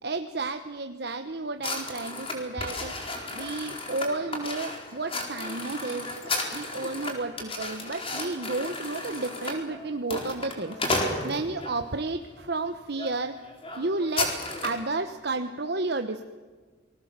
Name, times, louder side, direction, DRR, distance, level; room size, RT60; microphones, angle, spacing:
voice 1, 0.0-2.9 3.3-6.1 6.5-10.8 11.2-13.3 13.8-14.3 14.6-16.2, right 3 dB, 60° right, 7 dB, 1.1 m, -32 dB
sound 1, 1.6-11.8 12.4-12.6 12.9-13.1 13.4-14.9, left 2 dB, 30° left, 4.4 m, -33 dB
28.5 x 20.5 x 7.5 m, 1.4 s
head